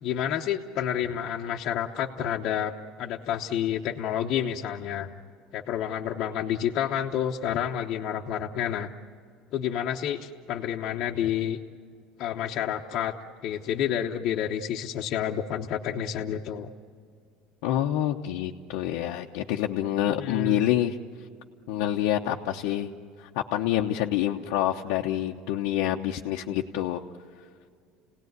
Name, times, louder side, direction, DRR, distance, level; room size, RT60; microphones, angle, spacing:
voice 1, 0.0-2.7 3.0-5.1 5.5-8.9 9.5-11.6 12.2-13.1 13.4-16.7 20.2-20.7, left 9 dB, 45° left, 0 dB, 1.0 m, -29 dB
voice 2, 17.6-21.0 21.7-22.9 23.2-27.0, left 12 dB, 70° left, 0 dB, 0.9 m, -27 dB
29.5 x 18.0 x 9.5 m, 2.2 s
cardioid pair, 150°, 0 cm